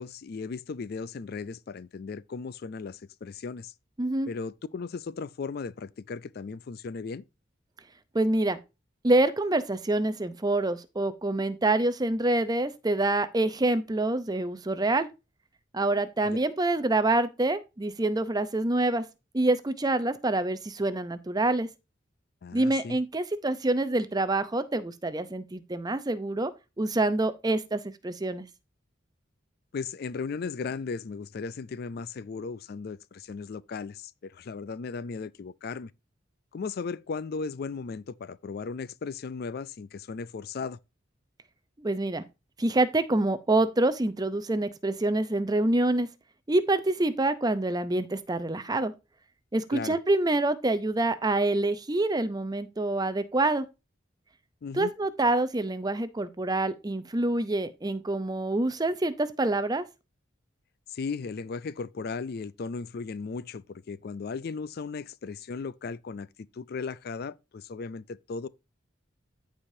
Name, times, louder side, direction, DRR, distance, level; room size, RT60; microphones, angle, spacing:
voice 1, 0.0-3.7 4.3-7.2 16.2-16.4 22.4-23.0 29.7-35.9 36.5-40.8 49.7-50.0 54.6-54.9 60.9-68.5, left 4 dB, 55° left, 0.4 m, -36 dB
voice 2, 4.0-4.3 8.1-8.6 9.0-15.1 15.7-19.0 19.3-21.7 22.5-26.5 26.8-28.5 41.8-42.2 42.6-46.1 46.5-48.9 49.5-53.7 54.7-59.8, right 2 dB, 20° right, 0.6 m, -26 dB
14.5 x 4.9 x 2.7 m
head